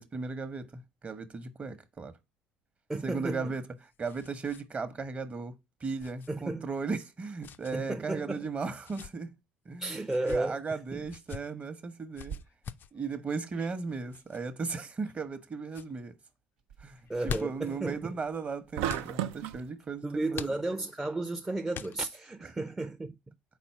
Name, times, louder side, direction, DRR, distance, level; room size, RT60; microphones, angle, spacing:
voice 1, 0.0-2.1 3.0-5.5 5.8-9.3 9.6-10.0 10.2-12.4 12.9-16.1 16.8-17.0 17.2-20.6 22.4-22.5, right 4 dB, 30° right, 0.9 m, -36 dB
voice 2, 2.9-3.5 6.3-6.6 7.7-8.4 9.8-11.0 17.1-18.1 20.0-23.1, right 2 dB, 15° right, 0.6 m, -33 dB
sound 1, 3.3-4.6 4.9-5.1 6.0-6.3 7.4-7.8 8.7-9.1 10.0-10.4 11.1-11.4 12.1-12.9 14.1-14.4 15.0-15.4 15.7-15.9 17.0-17.7 18.8-19.1 20.3-21.0 21.7-22.3, left 7 dB, 45° left, 0.4 m, -43 dB
sound 2, 10.8-11.1 12.2-12.4 13.5-13.8 16.6-19.4, right 6 dB, 80° right, 1.1 m, -50 dB
sound 3, 18.8-19.6, right 12 dB, 65° right, 0.4 m, -32 dB
4.2 x 4.2 x 5.5 m
hypercardioid pair, 60°, 5 cm